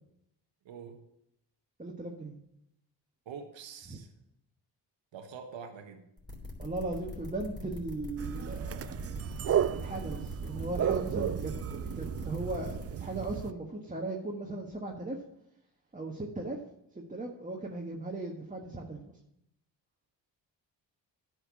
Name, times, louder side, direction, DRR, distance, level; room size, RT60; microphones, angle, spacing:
voice 1, 0.6-1.0 3.2-4.1 5.1-6.1, right 6 dB, 70° right, 6 dB, 1.2 m, -45 dB
voice 2, 1.8-2.4 3.9-4.0 6.6-9.0 9.7-15.2 15.9-16.6 16.9-19.2, right 2 dB, 15° right, 0 dB, 1.4 m, -38 dB
sound 1, 6.2-12.9, left 2 dB, 10° left, 3.2 m, -42 dB
sound 2, 8.2-13.5, right 9 dB, 35° right, 0.4 m, -33 dB
10.0 x 4.6 x 7.1 m, 0.79 s
supercardioid pair, 50°, 46 cm